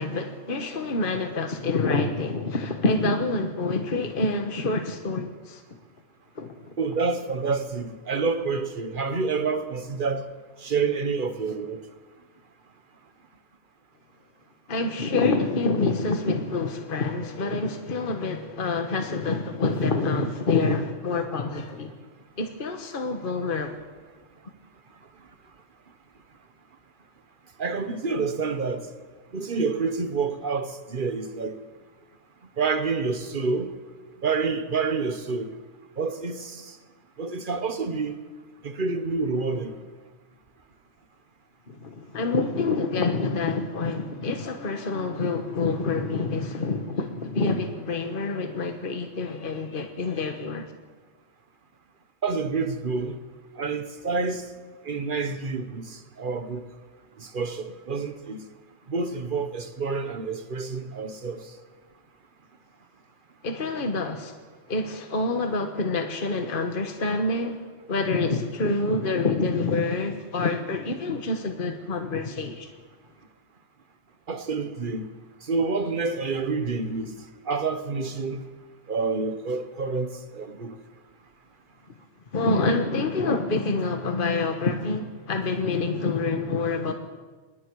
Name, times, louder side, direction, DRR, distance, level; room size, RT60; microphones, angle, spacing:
voice 1, 0.0-5.6 6.4-6.6 14.7-21.9 22.4-23.8 41.7-50.7 63.4-64.3 64.7-67.6 67.9-72.7 82.3-86.9, left 3 dB, 45° left, 1.5 m, -27 dB
voice 2, 6.8-10.2 10.6-11.8 27.6-28.9 29.3-31.5 32.6-33.7 34.2-35.5 36.0-36.6 37.2-38.1 38.6-39.8 52.2-53.2 53.6-54.4 54.9-55.9 56.2-56.6 57.2-58.4 58.9-61.4 74.3-75.0 75.5-77.1 77.5-78.4 78.9-80.7, right 4 dB, 45° right, 1.3 m, -28 dB
26.5 x 21.5 x 4.8 m
omnidirectional pair, 1.3 m